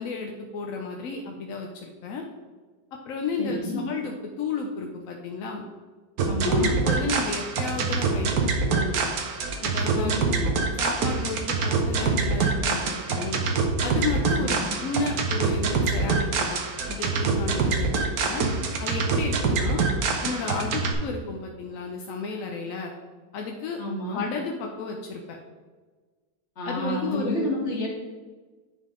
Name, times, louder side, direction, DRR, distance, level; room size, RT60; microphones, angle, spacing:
voice 1, 0.0-2.2 3.1-5.6 6.4-9.0 9.6-10.2 10.8-13.4 13.8-16.6 16.9-18.5 18.8-19.8 20.2-22.9 23.3-23.8 24.1-25.4 26.6-27.5, left 4 dB, 65° left, 2 dB, 0.8 m, -32 dB
voice 2, 3.4-3.8 6.2-6.7 10.0-10.5 14.3-14.7 23.8-24.2 26.6-27.9, left 1 dB, 40° left, -4 dB, 1.9 m, -30 dB
sound 1, 6.2-20.9, right 4 dB, 65° right, 1.2 m, -25 dB
9.9 x 3.6 x 3.7 m, 1.4 s
omnidirectional pair, 1.9 m